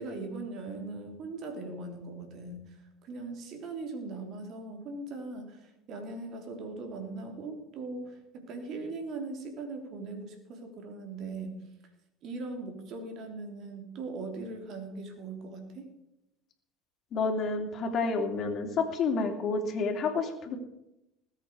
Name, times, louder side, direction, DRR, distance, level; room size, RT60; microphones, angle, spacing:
voice 1, 0.0-2.8 3.0-11.6 12.2-15.9, right 3 dB, 55° right, 4 dB, 3.4 m, -40 dB
voice 2, 17.1-20.6, left 4 dB, 50° left, 4 dB, 2.9 m, -29 dB
20.0 x 8.3 x 4.8 m, 0.89 s
hypercardioid pair, 75°, 0 cm